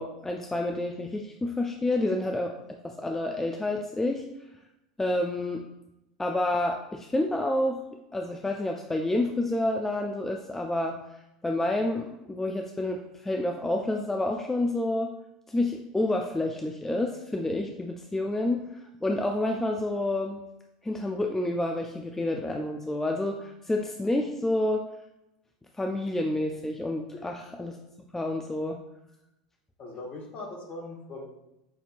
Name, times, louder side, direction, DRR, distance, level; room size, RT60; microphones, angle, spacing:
voice 1, 0.0-4.3 5.0-5.6 6.2-7.8 8.1-11.0 11.4-15.1 15.5-20.4 20.8-24.9 25.8-27.8 28.1-28.8, left 1 dB, 10° left, 2 dB, 0.3 m, -29 dB
voice 2, 29.8-31.2, left 2 dB, 40° left, -1 dB, 1.2 m, -40 dB
5.9 x 2.7 x 2.4 m, 0.90 s
figure-of-eight pair, 80°, 4 cm